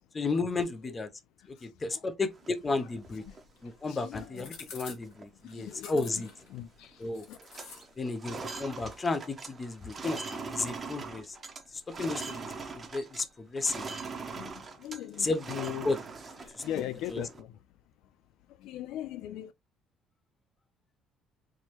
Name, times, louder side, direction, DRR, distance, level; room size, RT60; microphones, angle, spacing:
voice 1, 0.1-1.1 1.5-3.2 3.6-6.3 7.0-7.2 8.0-11.4 11.9-13.9 15.2-15.5 15.8-16.0 17.1-17.2, left 3 dB, 15° left, 0.5 m, -33 dB
voice 2, 1.6-2.1 3.3-3.4 3.9-4.5 5.5-6.2 6.5-7.4 13.8-13.9 14.3-15.9 16.4-17.6 18.5-19.5, left 12 dB, 70° left, 0.3 m, -40 dB
sound 1, 2.3-3.4 3.9-4.0 4.2-4.6 5.0-5.2 5.5-6.6 6.8-7.1 7.3-13.3 13.6-17.4, right 4 dB, 20° right, 0.7 m, -42 dB
sound 2, 2.9-14.5, left 5 dB, 90° left, 2.1 m, -54 dB
4.6 x 3.0 x 2.9 m
cardioid pair, 175°, 0 cm